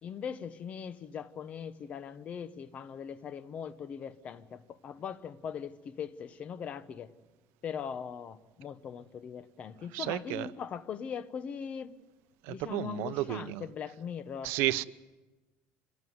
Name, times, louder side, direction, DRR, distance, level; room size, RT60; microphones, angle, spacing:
voice 1, 0.0-7.1 7.6-11.9 12.5-14.5, left 7 dB, 30° left, 1.0 m, -40 dB
voice 2, 9.9-10.5 12.5-13.7 14.4-14.8, right 16 dB, 70° right, 0.8 m, -32 dB
25.5 x 17.0 x 9.5 m
cardioid pair, 165°, 4 cm